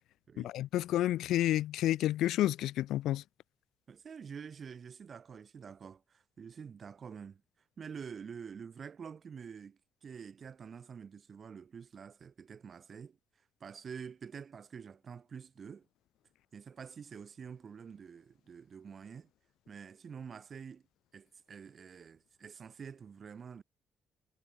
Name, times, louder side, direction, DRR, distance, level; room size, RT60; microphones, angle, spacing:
voice 1, 0.4-3.2, left 14 dB, 85° left, 0.4 m, -30 dB
voice 2, 3.9-7.4 7.8-13.2 13.6-15.9 16.5-19.3 19.7-20.8 21.1-23.6, right 6 dB, 30° right, 5.8 m, -47 dB
cardioid pair, 175°, 0 cm